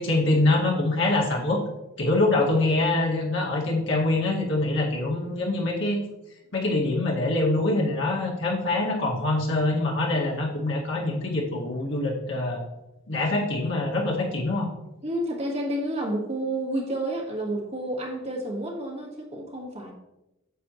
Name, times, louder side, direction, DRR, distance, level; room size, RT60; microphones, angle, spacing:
voice 1, 0.0-1.6 2.0-6.0 6.5-12.6 13.1-14.7, left 2 dB, 65° left, -2 dB, 2.1 m, -24 dB
voice 2, 15.0-19.9, right 1 dB, 30° right, -1 dB, 1.6 m, -30 dB
9.3 x 7.1 x 3.1 m, 0.94 s
head